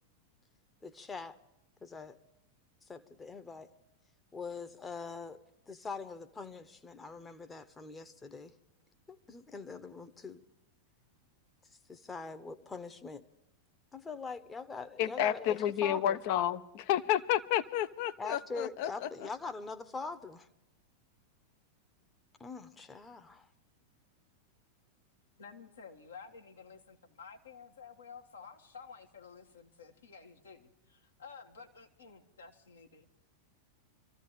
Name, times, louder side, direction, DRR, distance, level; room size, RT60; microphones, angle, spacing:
voice 1, 0.8-1.4 1.8-2.2 2.9-3.7 4.3-5.4 5.7-8.5 9.1-10.4 11.9-13.2 13.9-16.2 18.2-20.5 22.4-23.5, left 4 dB, 15° left, 10 dB, 1.0 m, -43 dB
voice 2, 15.0-19.3, left 11 dB, 45° left, 12 dB, 0.7 m, -31 dB
voice 3, 25.4-33.0, left 5 dB, 70° left, 3 dB, 1.6 m, -52 dB
25.5 x 15.0 x 3.2 m, 0.89 s
figure-of-eight pair, 90°, 0 cm